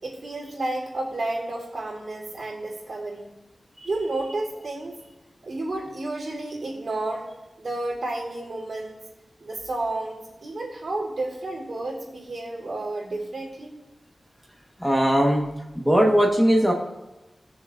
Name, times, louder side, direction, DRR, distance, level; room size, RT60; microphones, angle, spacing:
voice 1, 0.0-3.3 3.8-5.0 5.4-7.3 7.6-9.0 9.4-13.7, right 2 dB, 70° right, -3 dB, 3.4 m, -31 dB
voice 2, 14.8-15.4 15.7-16.7, equal, ahead, -1 dB, 1.3 m, -19 dB
20.5 x 7.0 x 2.5 m, 1.0 s
wide cardioid pair, 95°, 0 cm